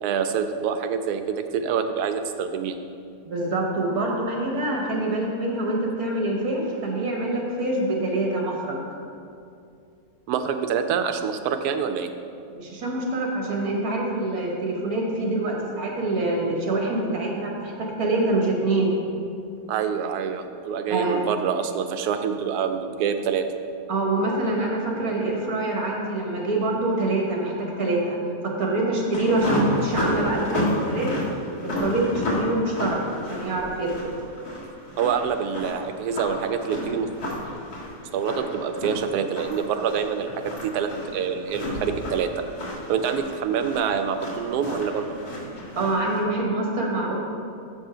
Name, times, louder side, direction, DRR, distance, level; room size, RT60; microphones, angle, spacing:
voice 1, 0.0-2.8 10.3-12.1 19.7-23.4 35.0-37.1 38.1-42.3 42.7-45.1, right 7 dB, 85° right, 8 dB, 1.1 m, -26 dB
voice 2, 3.2-8.8 12.5-18.9 20.9-21.2 23.9-28.2 28.4-31.2 31.8-34.1 45.8-47.3, right 2 dB, 70° right, -1 dB, 1.7 m, -25 dB
sound 1, 29.1-46.2, left 1 dB, 75° left, 2.3 m, -31 dB
7.4 x 5.3 x 5.0 m, 2.5 s
omnidirectional pair, 1.6 m